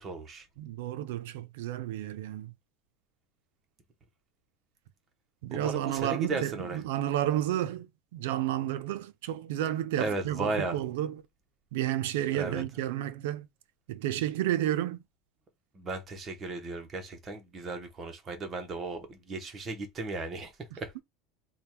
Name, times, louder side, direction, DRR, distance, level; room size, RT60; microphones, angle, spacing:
voice 1, 0.0-0.4 5.5-6.8 10.0-10.8 12.3-12.6 15.7-20.9, right 3 dB, 20° right, 0.8 m, -35 dB
voice 2, 0.6-2.5 5.4-11.2 11.7-13.5 13.9-15.0 20.7-21.0, right 12 dB, 80° right, 0.4 m, -31 dB
3.4 x 2.2 x 4.4 m
supercardioid pair, 180°, 0 cm